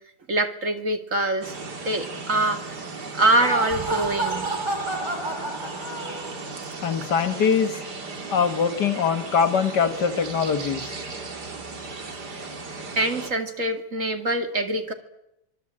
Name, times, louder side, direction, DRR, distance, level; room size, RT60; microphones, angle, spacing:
voice 1, 0.3-1.5 1.8-2.6 3.1-4.5 13.0-14.9, right 2 dB, 50° right, 6 dB, 2.7 m, -24 dB
sound 1, 1.4-13.3, right 3 dB, 70° right, 3.2 m, -36 dB
Laughter, 3.2-6.5, right 2 dB, 15° right, 3.9 m, -30 dB
voice 2, 6.8-7.8 8.3-10.9, left 6 dB, 75° left, 10 dB, 2.2 m, -22 dB
26.0 x 22.5 x 8.8 m, 0.86 s
omnidirectional pair, 1.8 m